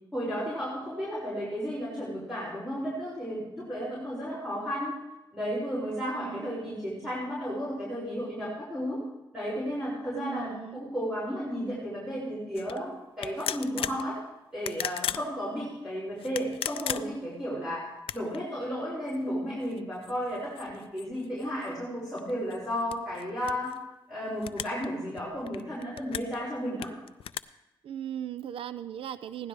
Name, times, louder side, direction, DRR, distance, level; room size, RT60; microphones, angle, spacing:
voice 1, 0.1-4.9 5.3-9.0 9.3-14.2 14.5-17.9 18.1-23.7 24.1-26.9, equal, 5° right, -8 dB, 5.7 m, -33 dB
voice 2, 6.1-6.8 10.2-10.8 27.8-29.5, right 10 dB, 75° right, 14 dB, 0.4 m, -38 dB
sound 1, 12.6-12.8 13.2-14.0 14.5-15.3 16.2-17.3 18.0-18.4 19.1-19.2 19.6-21.7 22.2-23.8 24.4-24.9 25.2-26.4 26.8-27.4, left 10 dB, 80° left, 0.4 m, -36 dB
16.5 x 11.5 x 3.3 m, 0.95 s
cardioid pair, 70°, 9 cm